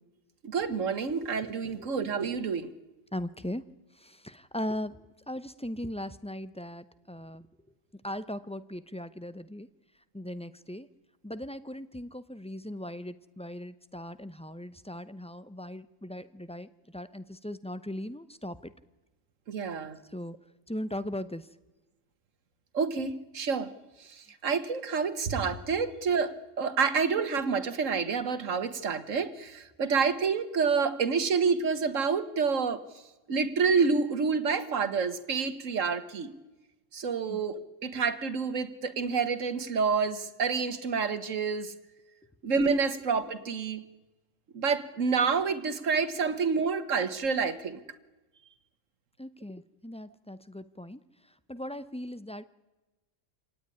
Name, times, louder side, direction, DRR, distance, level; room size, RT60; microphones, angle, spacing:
voice 1, 0.4-2.7 19.5-20.0 22.7-23.7 24.0-32.8 33.3-36.3 36.9-41.7 42.4-43.8 44.5-47.8, right 5 dB, 80° right, 11 dB, 1.8 m, -28 dB
voice 2, 3.1-3.6 4.0-7.5 8.0-9.7 10.1-10.9 11.2-18.7 20.1-20.3 20.7-21.5 37.3-37.4 49.2-51.0 51.5-52.4, left 1 dB, 5° left, 13 dB, 0.6 m, -38 dB
26.0 x 18.0 x 9.9 m, 1.1 s
omnidirectional pair, 1.3 m